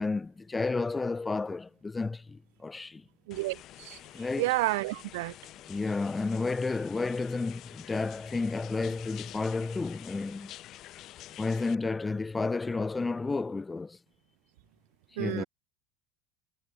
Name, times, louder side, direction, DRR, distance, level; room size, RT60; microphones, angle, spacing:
voice 1, 0.0-3.0 4.1-4.5 5.7-10.5 11.4-14.0 15.2-15.4, left 3 dB, 20° left, 0.9 m, -31 dB
sound 1, 3.3-11.8, left 14 dB, 55° left, 1.5 m, -48 dB
voice 2, 3.3-4.0 4.4-5.3 15.2-15.5, right 22 dB, 70° right, 1.4 m, -30 dB
hypercardioid pair, 70°, 0 cm